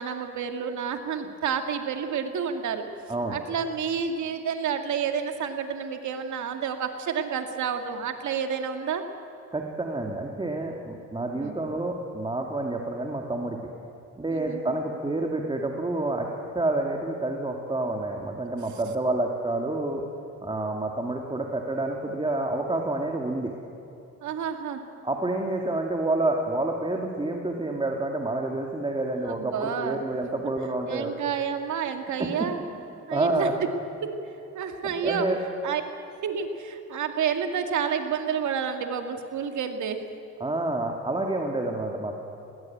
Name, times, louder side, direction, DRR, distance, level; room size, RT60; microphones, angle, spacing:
voice 1, 0.0-2.9 3.3-9.0 11.3-11.6 14.3-14.8 24.2-24.8 29.2-30.0 30.9-32.6 33.1-33.5 34.0-34.1 34.5-35.3 35.6-35.8 36.2-40.0, right 7 dB, 70° right, 6 dB, 2.2 m, -29 dB
voice 2, 9.5-13.7 14.2-16.3 16.5-20.0 20.4-23.5 25.0-31.1 32.2-32.5 33.1-33.7 34.8-35.4 40.4-42.1, right 2 dB, 15° right, 1 dB, 2.4 m, -28 dB
20.0 x 19.0 x 8.8 m, 2.8 s
cardioid pair, 90°, 30 cm